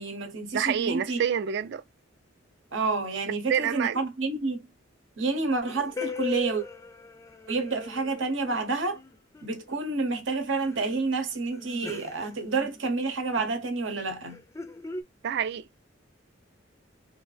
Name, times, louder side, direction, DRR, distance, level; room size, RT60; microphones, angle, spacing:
voice 1, 0.0-1.2 2.7-4.7 5.2-6.6 7.5-9.0 9.4-14.4, right 3 dB, 80° right, 0.9 m, -29 dB
voice 2, 0.5-1.8 3.5-4.0 15.2-15.9, right 8 dB, 60° right, 0.3 m, -28 dB
sound 1, 5.7-9.9 10.1-10.2 10.6-10.9 11.3-13.0 13.3-13.6 14.3-15.0, left 4 dB, 15° left, 0.3 m, -39 dB
3.0 x 2.6 x 3.2 m
head